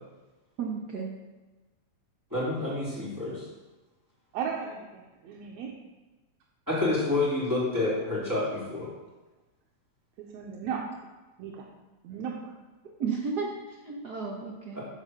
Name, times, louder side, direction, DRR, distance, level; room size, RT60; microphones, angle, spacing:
voice 1, 0.6-1.1 13.0-14.8, right 5 dB, 60° right, -2 dB, 1.0 m, -33 dB
voice 2, 2.3-3.5 6.7-8.9 14.7-14.8, left 2 dB, 5° right, -8 dB, 3.2 m, -28 dB
voice 3, 4.3-5.7 10.3-10.8 11.4-11.7 12.0-12.5, right 7 dB, 75° right, -1 dB, 2.1 m, -35 dB
10.5 x 5.0 x 6.7 m, 1.2 s
omnidirectional pair, 3.4 m